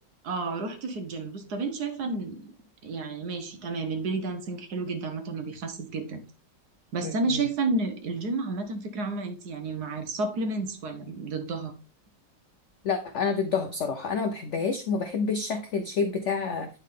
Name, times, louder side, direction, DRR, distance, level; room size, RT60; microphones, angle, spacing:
voice 1, 0.2-2.5 2.8-6.2 6.9-11.7, right 3 dB, 65° right, 7 dB, 1.4 m, -31 dB
voice 2, 7.0-7.4 12.8-16.7, left 5 dB, 70° left, 6 dB, 0.7 m, -28 dB
9.4 x 3.7 x 3.7 m, 0.36 s
omnidirectional pair, 2.0 m